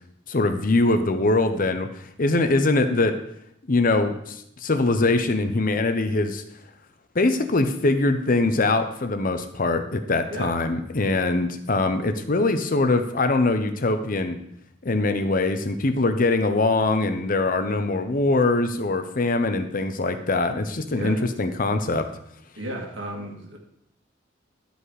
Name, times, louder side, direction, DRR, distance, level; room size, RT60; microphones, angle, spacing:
voice 1, 0.3-1.9 2.2-3.2 3.7-6.4 7.1-14.4 14.8-22.1, left 2 dB, 50° left, 8 dB, 0.8 m, -22 dB
voice 2, 22.6-23.6, right 1 dB, 90° right, 1 dB, 1.9 m, -34 dB
12.0 x 5.3 x 4.8 m, 0.76 s
head